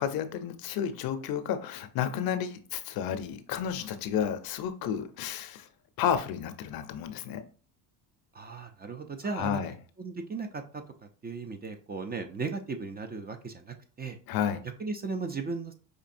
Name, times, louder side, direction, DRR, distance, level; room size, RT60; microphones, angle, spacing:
voice 1, 0.0-5.7 6.0-7.4 9.3-9.7 14.3-14.6, left 9 dB, 60° left, 10 dB, 0.6 m, -31 dB
voice 2, 8.3-9.6 10.0-10.8 11.2-14.2 14.8-15.7, right 4 dB, 25° right, 7 dB, 0.4 m, -36 dB
5.0 x 2.7 x 2.5 m, 0.41 s
supercardioid pair, 85°, 42 cm